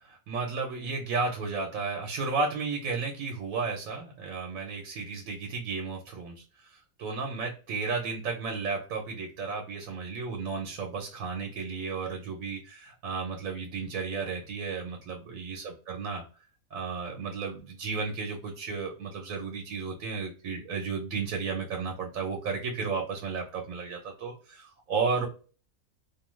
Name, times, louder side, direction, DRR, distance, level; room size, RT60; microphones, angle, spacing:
voice 1, 0.3-16.2 16.7-25.3, right 4 dB, 90° right, 1 dB, 1.1 m, -33 dB
2.6 x 2.2 x 3.0 m, 0.38 s
omnidirectional pair, 1.4 m